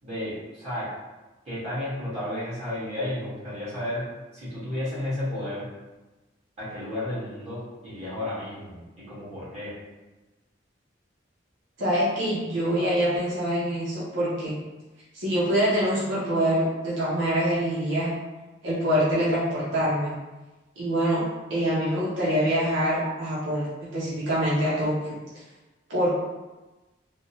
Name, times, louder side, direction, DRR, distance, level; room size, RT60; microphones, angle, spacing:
voice 1, 0.0-0.9 1.4-4.1 4.3-5.7 6.6-9.7, left 1 dB, 35° right, -11 dB, 1.5 m, -32 dB
voice 2, 11.8-14.5 15.1-18.1 18.6-20.1 20.8-21.2 21.5-25.2 25.9-26.1, equal, 80° right, -8 dB, 0.8 m, -25 dB
3.3 x 2.1 x 2.7 m, 1.1 s
head